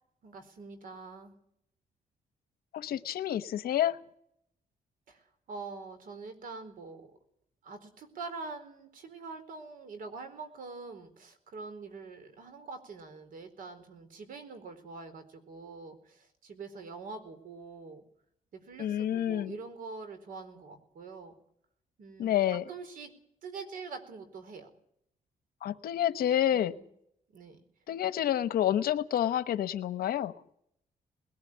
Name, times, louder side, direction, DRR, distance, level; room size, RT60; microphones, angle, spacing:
voice 1, 0.2-1.3 5.1-7.1 7.6-18.0 18.5-21.4 22.0-23.1 23.4-24.7 26.5-26.9 27.3-27.7, right 4 dB, 65° right, 9 dB, 4.3 m, -45 dB
voice 2, 2.7-4.0 18.8-19.5 22.2-22.6 25.6-26.7 27.9-30.3, left 11 dB, 75° left, 13 dB, 1.1 m, -28 dB
21.0 x 14.0 x 9.9 m, 0.71 s
cardioid pair, 150°, 16 cm